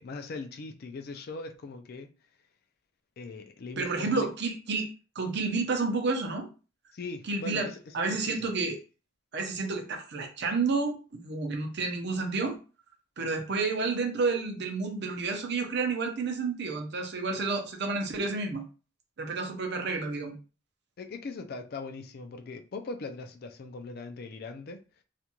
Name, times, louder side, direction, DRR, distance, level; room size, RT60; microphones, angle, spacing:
voice 1, 0.0-2.1 3.2-4.3 6.9-8.5 21.0-24.8, left 3 dB, 50° left, 0.4 m, -40 dB
voice 2, 3.8-4.9 5.2-6.5 7.2-7.7 7.9-8.8 9.3-12.5 13.2-18.6 19.2-20.3, right 4 dB, 60° right, 0.6 m, -30 dB
2.5 x 2.2 x 2.9 m
head